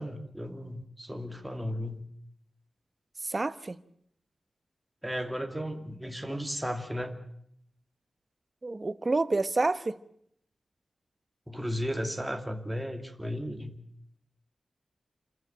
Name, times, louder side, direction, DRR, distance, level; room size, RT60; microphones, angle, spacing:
voice 1, 0.0-2.0 5.0-7.2 11.5-13.8, equal, 5° right, 2.5 m, -35 dB
voice 2, 3.3-3.8 8.6-10.0, right 3 dB, 35° right, 1.1 m, -28 dB
27.5 x 14.5 x 8.7 m
wide cardioid pair, 100°, 0 cm